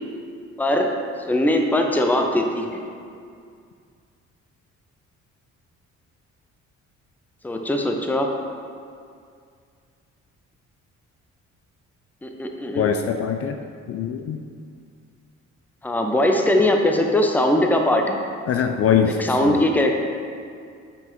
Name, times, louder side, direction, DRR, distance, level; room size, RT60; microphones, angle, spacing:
voice 1, 0.6-1.0 1.3-2.8 7.4-8.3 12.2-12.9 15.8-18.2 19.2-20.0, left 1 dB, 5° left, 3 dB, 0.6 m, -20 dB
voice 2, 12.8-13.6 13.9-14.4 18.5-19.7, left 7 dB, 50° left, 5 dB, 0.4 m, -22 dB
6.8 x 5.4 x 3.1 m, 2.2 s
cardioid pair, 90°, 30 cm